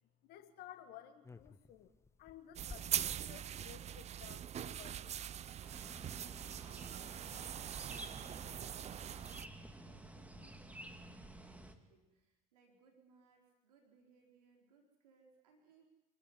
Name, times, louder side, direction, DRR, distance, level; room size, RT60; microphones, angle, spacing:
voice 1, 0.2-1.9 2.2-5.2, left 11 dB, 55° left, 9 dB, 1.6 m, -56 dB
sound 1, 1.2-3.8 5.0-5.1 5.3-5.4 5.5-5.9 6.3-6.6, left 3 dB, 15° left, 0.9 m, -57 dB
sound 2, 2.6-9.5, right 10 dB, 35° right, 0.7 m, -42 dB
sound 3, 5.6-11.7, right 1 dB, 5° right, 2.2 m, -52 dB
voice 2, 6.4-15.9, right 5 dB, 80° right, 1 dB, 4.2 m, -68 dB
26.5 x 12.5 x 9.6 m, 1.0 s
hypercardioid pair, 70°, 19 cm